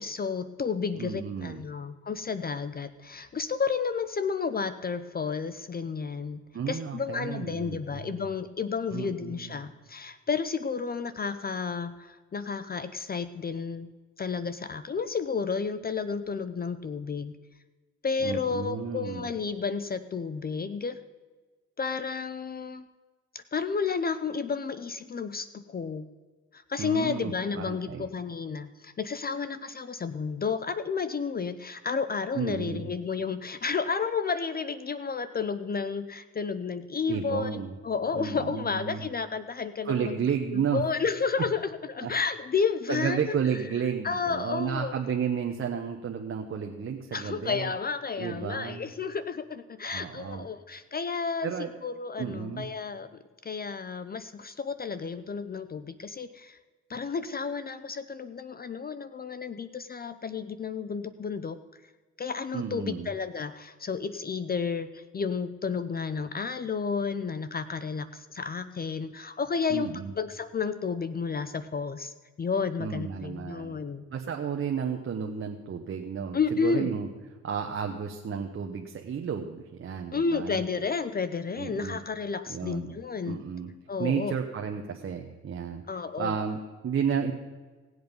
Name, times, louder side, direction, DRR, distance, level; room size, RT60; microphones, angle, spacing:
voice 1, 0.0-13.9 14.2-17.4 18.0-21.0 21.8-22.9 23.3-26.1 26.5-40.2 40.5-43.2 44.0-44.9 47.1-51.5 51.8-53.1 53.4-56.6 56.9-61.6 62.2-74.0 76.3-76.9 80.1-83.4 83.9-84.4 85.9-86.3, left 5 dB, 30° left, 13 dB, 0.6 m, -31 dB
voice 2, 1.0-1.6 6.5-8.2 8.9-9.5 18.2-19.3 26.8-28.1 32.3-32.9 37.1-37.7 38.1-39.0 39.8-40.8 42.0-42.1 42.9-47.7 48.2-48.9 49.8-50.5 51.4-51.7 52.2-52.7 62.5-63.1 69.7-70.1 72.8-73.8 74.1-77.1 77.4-80.6 81.6-82.0 82.5-83.0 83.2-83.7 84.0-85.8 86.2-87.3, right 7 dB, 45° right, 3 dB, 1.1 m, -32 dB
18.0 x 7.9 x 5.4 m, 1.3 s
cardioid pair, 90°, 30 cm